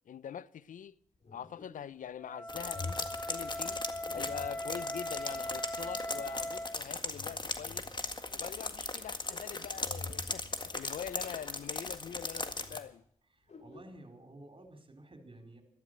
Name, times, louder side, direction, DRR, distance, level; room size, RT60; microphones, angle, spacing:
voice 1, 0.1-1.0 1.3-3.8 4.1-7.9 8.3-13.0, left 9 dB, 70° left, 0.6 m, -44 dB
sound 1, 1.1-2.1 2.6-2.9 4.0-4.9 6.1-6.8 7.5-7.7 8.0-8.1 8.5-9.9 10.4-10.5 10.8-11.9 12.1-12.2 13.4-13.8, left 3 dB, 55° left, 2.7 m, -57 dB
Wind instrument woodwind instrument, 2.2-6.8, left 1 dB, 15° left, 1.0 m, -40 dB
sound 2, 2.5-12.8, left 3 dB, 35° left, 1.8 m, -38 dB
voice 2, 13.3-15.6, right 1 dB, 40° right, 4.7 m, -52 dB
13.5 x 13.0 x 7.9 m
supercardioid pair, 40°, 14 cm